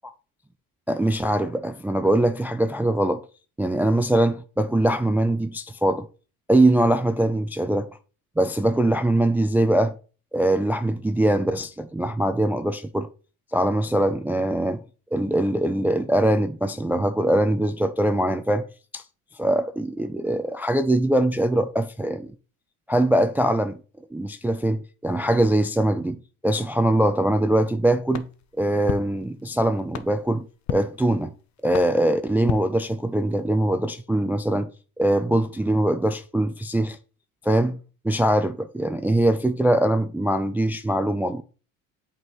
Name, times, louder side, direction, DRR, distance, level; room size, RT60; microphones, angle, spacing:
voice 1, 0.9-3.2 3.6-6.1 6.5-7.9 8.4-9.9 10.3-13.1 13.5-14.8 15.1-18.7 18.9-19.0 19.4-22.3 22.9-23.8 24.1-28.3 28.6-31.3 31.6-34.7 35.0-37.0 37.4-37.8 38.0-41.4, right 1 dB, 5° right, 0.3 m, -22 dB
sound 1, 28.1-33.4, left 9 dB, 40° left, 0.7 m, -36 dB
8.4 x 3.8 x 3.0 m
hypercardioid pair, 65°, 43 cm